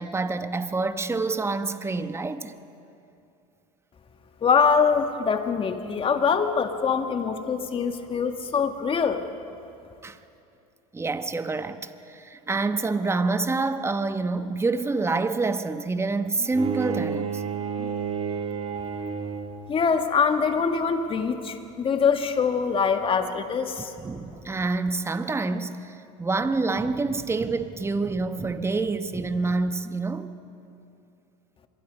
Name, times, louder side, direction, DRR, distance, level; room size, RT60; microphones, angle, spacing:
voice 1, 0.0-2.5 10.0-10.2 10.9-17.4 17.8-17.9 24.0-30.3, right 3 dB, 15° right, 1.1 m, -27 dB
voice 2, 4.4-9.2 19.7-23.9, left 6 dB, 30° left, 1.9 m, -24 dB
Bowed string instrument, 16.5-19.8, right 6 dB, 30° right, 2.2 m, -30 dB
25.0 x 22.0 x 5.3 m
supercardioid pair, 95°, 18 cm